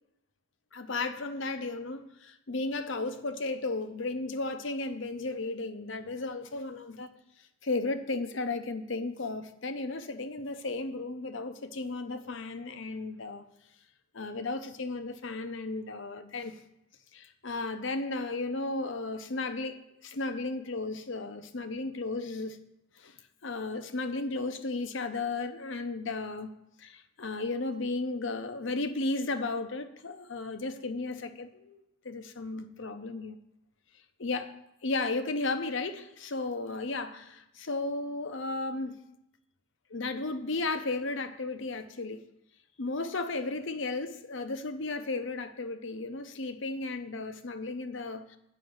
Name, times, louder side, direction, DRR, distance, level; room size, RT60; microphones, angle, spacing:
voice 1, 0.7-7.1 7.6-13.4 14.1-16.6 17.1-22.6 23.0-23.1 23.4-26.5 26.8-33.4 34.2-34.6 34.8-39.0 39.9-42.2 42.8-48.4, left 3 dB, 60° left, 9 dB, 0.8 m, -34 dB
9.2 x 5.8 x 8.0 m, 0.82 s
head